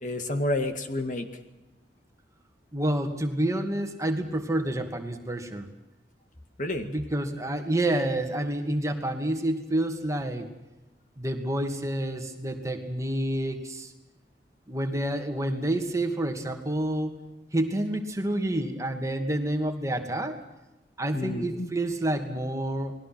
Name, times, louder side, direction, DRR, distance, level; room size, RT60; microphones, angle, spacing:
voice 1, 0.0-1.3 6.6-6.9 21.1-21.7, left 1 dB, 45° left, 7 dB, 2.1 m, -29 dB
voice 2, 2.7-5.7 6.8-10.5 11.2-13.9 14.7-17.1 17.5-20.4 21.0-22.9, right 1 dB, 20° right, 5 dB, 2.4 m, -28 dB
29.5 x 20.5 x 6.1 m, 1.0 s
head